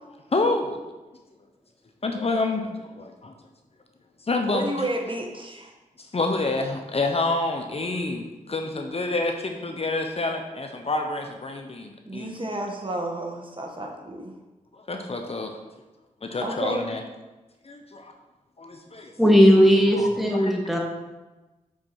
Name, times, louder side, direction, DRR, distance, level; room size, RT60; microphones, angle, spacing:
voice 1, 0.3-0.8 2.0-3.3 4.3-4.6 6.0-12.3 14.7-15.5 16.2-17.0 17.6-18.1 18.6-19.1 19.9-20.1 20.4-20.5, left 2 dB, 45° left, 4 dB, 0.8 m, -28 dB
voice 2, 4.5-5.7 12.1-14.3 16.4-16.8, right 1 dB, 35° right, 1 dB, 1.2 m, -31 dB
voice 3, 19.2-20.8, equal, ahead, 0 dB, 1.7 m, -17 dB
7.1 x 4.6 x 4.4 m, 1.1 s
cardioid pair, 50°, 14 cm